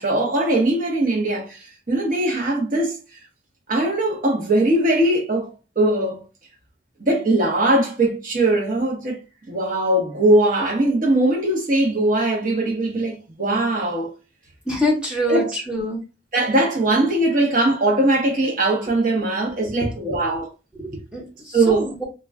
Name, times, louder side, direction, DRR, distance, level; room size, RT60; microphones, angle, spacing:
voice 1, 0.0-1.6 1.9-3.0 3.7-6.2 7.0-9.2 9.5-14.1 15.3-15.5 16.3-20.5 21.5-21.9, right 1 dB, 45° right, 0.8 m, -20 dB
voice 2, 14.7-16.0 20.8-22.0, equal, 5° right, 0.7 m, -25 dB
2.2 x 2.1 x 3.5 m
head